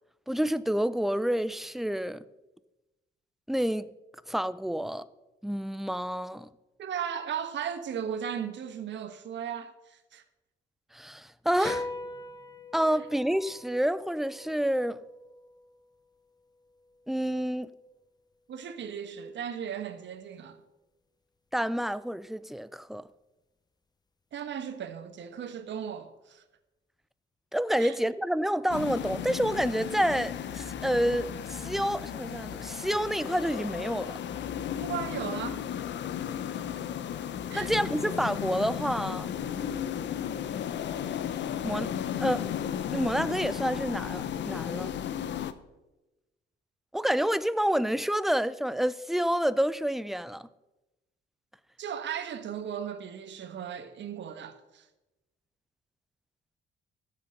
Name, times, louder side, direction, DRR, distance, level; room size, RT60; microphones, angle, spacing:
voice 1, 0.3-2.2 3.5-3.9 4.3-5.0 5.4-6.5 10.9-11.8 12.7-15.0 17.1-17.7 21.5-23.0 27.5-34.2 37.5-39.3 41.6-41.9 42.2-42.5 42.9-44.9 46.9-50.4, equal, ahead, 0.5 m, -28 dB
voice 2, 6.8-10.2 11.6-11.8 18.5-20.6 24.3-26.4 27.8-28.0 34.8-35.6 37.5-37.7 51.8-54.9, right 8 dB, 65° right, 1.3 m, -36 dB
sound 1, 11.6-18.4, left 2 dB, 20° left, 0.8 m, -43 dB
sound 2, 28.7-45.5, left 9 dB, 65° left, 0.8 m, -34 dB
13.5 x 7.3 x 5.4 m
cardioid pair, 90°, 20 cm